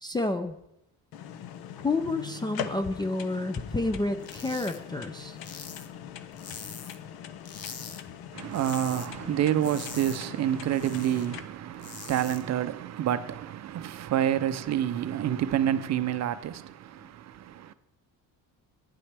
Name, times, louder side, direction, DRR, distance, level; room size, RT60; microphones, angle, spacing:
voice 1, 0.0-0.5 1.8-5.4, left 2 dB, 10° left, 0.3 m, -29 dB
sound 1, 1.1-11.4, left 9 dB, 75° left, 0.8 m, -42 dB
sound 2, 4.2-4.8 5.1-7.1 7.4-8.0 8.3-9.1 9.4-11.3 11.6-12.4, left 6 dB, 40° left, 0.9 m, -43 dB
voice 2, 8.3-17.7, right 11 dB, 45° right, 0.5 m, -28 dB
11.5 x 9.8 x 3.4 m
cardioid pair, 155°, 37 cm